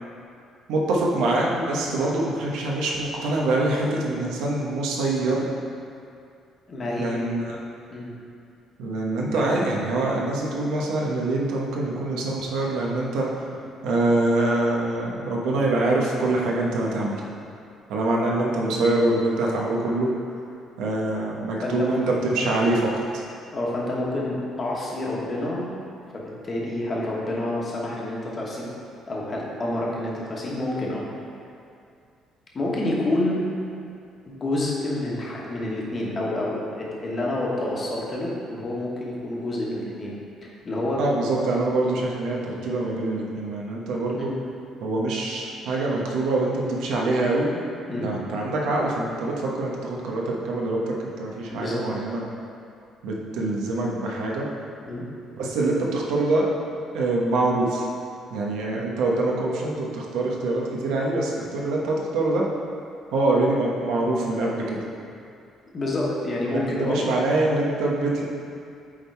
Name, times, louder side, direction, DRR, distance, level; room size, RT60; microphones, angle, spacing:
voice 1, 0.7-5.4 7.0-7.6 8.8-13.5 13.8-17.3 17.9-20.1 20.8-23.2 41.0-44.3 44.8-47.6 47.9-52.2 53.0-54.5 55.4-56.5 56.9-57.9 58.3-62.4 63.1-64.8 66.7-68.2, right 2 dB, 85° right, -3 dB, 1.1 m, -24 dB
voice 2, 6.7-7.2 7.9-8.1 9.3-9.7 21.6-22.0 22.5-22.6 23.5-25.7 26.1-28.7 29.0-31.1 32.5-33.4 34.3-41.0 44.2-44.3 47.9-48.1 51.5-51.9 54.9-55.0 65.7-67.0, left 1 dB, 25° left, -4 dB, 1.1 m, -28 dB
8.6 x 3.7 x 4.6 m, 2.5 s
cardioid pair, 175°, 0 cm